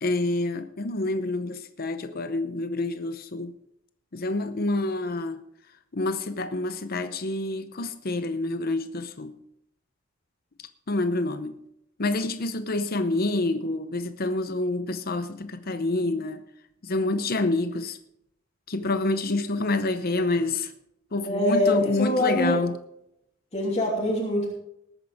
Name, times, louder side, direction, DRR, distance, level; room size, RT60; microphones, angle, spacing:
voice 1, 0.0-3.5 4.1-5.4 5.9-9.3 10.9-11.5 12.0-16.4 16.8-18.0 18.7-20.7 21.1-22.7, left 2 dB, 50° left, 9 dB, 0.8 m, -27 dB
voice 2, 21.2-22.6 23.5-24.5, left 1 dB, 35° left, -4 dB, 3.0 m, -24 dB
20.0 x 9.2 x 3.6 m, 0.77 s
head